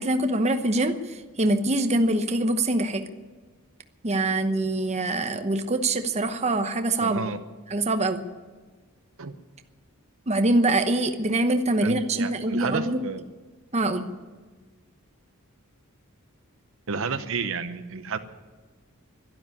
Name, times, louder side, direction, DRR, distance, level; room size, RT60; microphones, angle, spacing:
voice 1, 0.0-3.0 4.0-7.2 7.7-8.3 10.3-13.0 13.7-14.1, right 2 dB, 30° right, 7 dB, 0.9 m, -24 dB
voice 2, 7.0-7.4 9.2-9.3 11.8-13.2 16.9-18.2, right 5 dB, 65° right, 10 dB, 0.9 m, -31 dB
12.0 x 12.0 x 9.8 m, 1.4 s
head